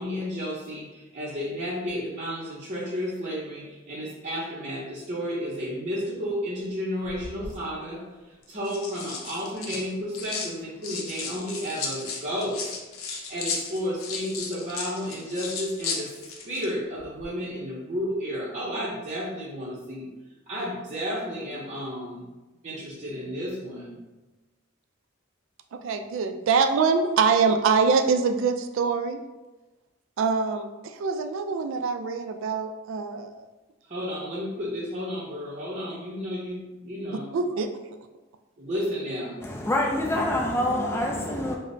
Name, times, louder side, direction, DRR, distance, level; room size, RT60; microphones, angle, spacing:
voice 1, 0.0-8.0 8.5-12.6 13.0-16.1 16.4-20.1 20.5-22.3 22.6-24.0 33.9-37.3 38.6-39.4, equal, 35° right, -7 dB, 0.7 m, -32 dB
sound 1, 7.0-7.5 8.4-10.5 10.8-16.7 17.0-17.2, left 4 dB, 90° left, 0.6 m, -35 dB
voice 2, 25.7-29.2 30.2-33.5 37.3-37.7, right 5 dB, 65° right, 7 dB, 0.3 m, -24 dB
voice 3, 39.4-41.6, left 1 dB, 10° left, -1 dB, 0.3 m, -26 dB
4.9 x 2.1 x 2.6 m, 1.1 s
head